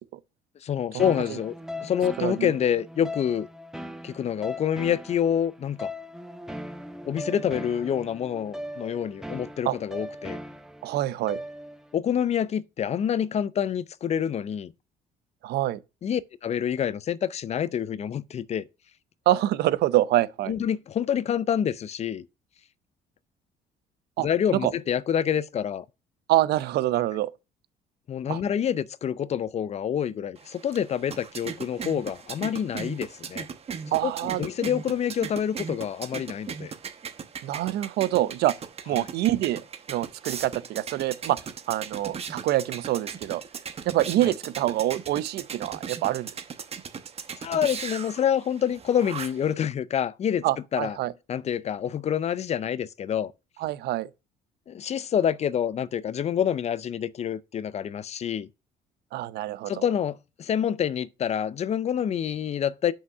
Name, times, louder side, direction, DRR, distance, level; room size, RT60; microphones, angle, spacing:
voice 1, 0.6-1.5 1.8-3.5 4.0-5.9 7.0-10.4 11.9-14.7 16.0-18.6 20.5-22.3 24.2-25.8 28.1-33.5 33.9-36.7 39.0-39.1 44.2-44.3 47.4-50.5 50.7-51.0 51.3-53.3 54.7-58.5 59.7-62.9, left 9 dB, 40° left, 0.5 m, -27 dB
sound 1, 1.0-12.0, left 1 dB, 5° right, 0.9 m, -39 dB
voice 2, 2.2-2.5 9.6-9.8 10.8-11.4 15.4-15.8 19.3-20.5 24.2-24.3 24.5-24.7 26.3-27.3 28.3-28.4 33.9-34.4 37.4-38.5 38.9-39.6 39.9-41.4 41.7-43.4 43.9-46.3 50.4-51.1 53.6-54.1 59.1-59.8, right 14 dB, 75° right, 0.6 m, -25 dB
sound 2, 30.4-49.5, right 6 dB, 35° right, 1.0 m, -38 dB
5.7 x 5.5 x 6.4 m
cardioid pair, 110°, 17 cm